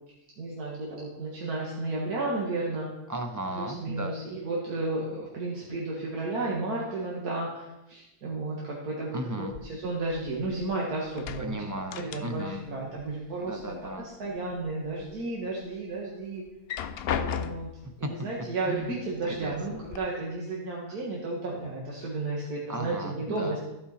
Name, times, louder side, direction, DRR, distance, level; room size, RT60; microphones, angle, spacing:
voice 1, 0.4-2.9 3.5-9.2 9.7-11.6 12.0-13.7 14.0-16.4 17.1-17.7 18.0-23.6, right 2 dB, 90° right, -4 dB, 2.0 m, -33 dB
voice 2, 3.1-4.1 9.1-9.6 11.4-12.6 13.4-14.1 18.0-18.1 18.7-18.9 19.3-19.8 22.7-23.6, right 1 dB, 20° right, 5 dB, 0.5 m, -36 dB
sound 1, 9.5-10.8 11.1-12.7 12.9-13.9 14.3-15.1 15.6-15.7 16.5-17.9 18.8-18.9 19.3-20.0, left 8 dB, 70° left, 0.5 m, -36 dB
14.5 x 5.4 x 4.2 m, 0.96 s
omnidirectional pair, 1.6 m